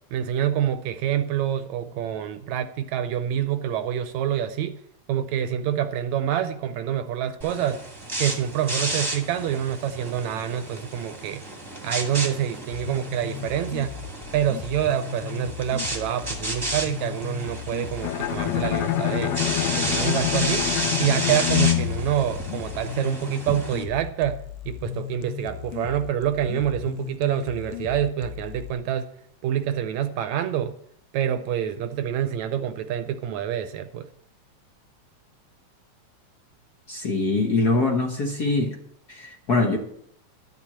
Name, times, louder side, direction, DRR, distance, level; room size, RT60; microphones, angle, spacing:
voice 1, 0.1-4.8 5.1-7.8 8.2-11.4 11.8-14.0 14.3-19.4 19.8-20.7 21.0-29.1 29.4-30.8 31.1-34.1, right 10 dB, 75° right, 10 dB, 1.9 m, -27 dB
sound 1, 7.4-23.8, right 1 dB, 10° right, 1.5 m, -32 dB
sound 2, 12.7-28.7, left 11 dB, 90° left, 2.1 m, -37 dB
Bowed string instrument, 18.0-23.1, left 12 dB, 75° left, 1.9 m, -26 dB
voice 2, 36.9-38.7 39.1-39.8, left 3 dB, 50° left, 2 dB, 1.2 m, -23 dB
12.5 x 6.1 x 8.6 m, 0.71 s
omnidirectional pair, 3.4 m